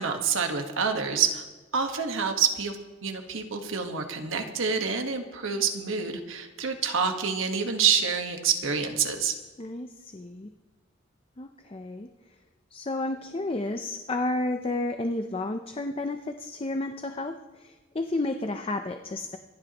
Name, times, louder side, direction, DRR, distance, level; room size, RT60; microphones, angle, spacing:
voice 1, 0.0-1.4 1.7-2.8 3.0-9.3, right 6 dB, 85° right, 5 dB, 1.5 m, -27 dB
voice 2, 9.6-10.5 11.4-12.1 12.7-19.4, left 2 dB, 30° left, 6 dB, 0.6 m, -31 dB
26.0 x 10.5 x 3.0 m, 1.2 s
head